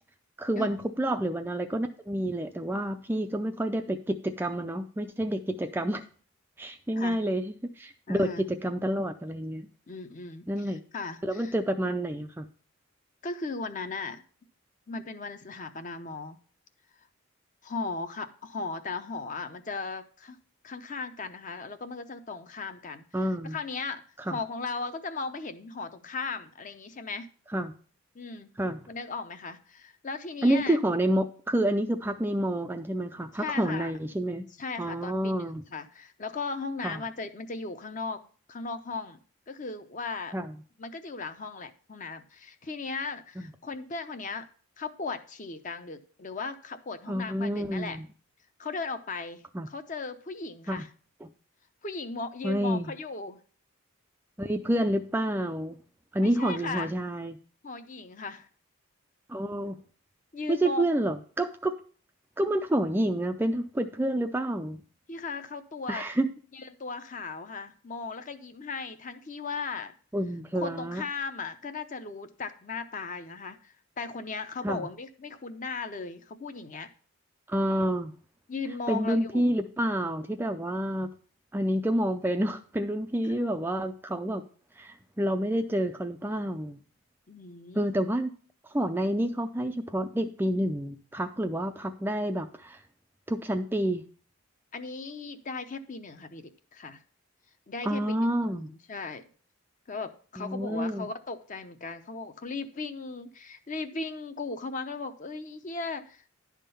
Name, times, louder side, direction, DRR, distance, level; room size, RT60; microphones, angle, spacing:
voice 1, 0.4-6.0 6.6-9.7 10.5-10.8 11.2-12.5 23.1-23.6 24.3-24.4 27.5-27.7 28.6-28.8 30.4-34.5 34.8-35.6 36.8-37.0 40.3-40.5 43.4-43.5 47.1-48.0 49.5-49.7 50.7-50.8 51.2-51.3 52.4-52.9 54.4-55.8 56.1-57.4 59.3-59.8 60.5-61.7 62.4-64.8 65.9-66.3 70.1-71.0 74.6-74.9 77.5-78.1 78.9-81.1 81.5-84.4 84.8-86.8 87.7-88.3 88.6-92.8 93.3-94.0 97.8-98.7 100.4-101.1, right 1 dB, 10° right, 6 dB, 0.3 m, -29 dB
voice 2, 8.1-8.4 9.9-11.5 13.2-14.2 14.9-16.4 17.6-20.4 20.6-23.0 23.4-24.0 24.3-27.3 28.1-28.5 28.9-30.8 33.3-33.9 34.6-38.2 38.5-39.2 39.5-40.4 40.8-44.5 44.8-48.0 48.6-50.9 51.8-53.4 56.2-56.9 57.6-58.5 60.3-60.9 65.1-66.1 66.5-69.9 70.6-76.9 78.5-79.5 87.3-87.9 94.7-97.0 97.7-99.3 99.9-106.3, left 4 dB, 35° left, 9 dB, 0.6 m, -37 dB
11.0 x 3.7 x 6.8 m, 0.43 s
head